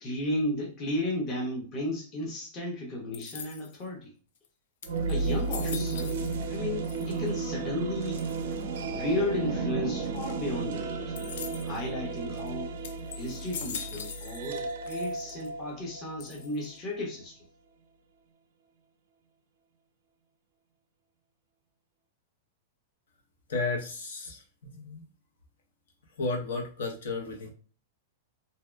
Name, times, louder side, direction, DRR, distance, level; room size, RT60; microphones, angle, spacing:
voice 1, 0.0-4.1 5.1-6.2 6.5-8.2 8.9-11.2 11.6-12.7 13.2-17.4, left 1 dB, 25° left, 0.7 m, -34 dB
sound 1, 3.1-3.9 4.4-4.5 4.8-6.6 6.8-7.4 8.2-8.6 11.2-11.8 12.4-12.5 12.8-14.6 14.9-15.5 16.2-16.8, left 7 dB, 60° left, 0.3 m, -42 dB
sound 2, 4.8-16.7, right 4 dB, 65° right, 0.4 m, -33 dB
voice 2, 23.5-25.0 26.2-27.5, left 3 dB, 85° left, 0.8 m, -33 dB
2.7 x 2.2 x 2.2 m
supercardioid pair, 170°, 0 cm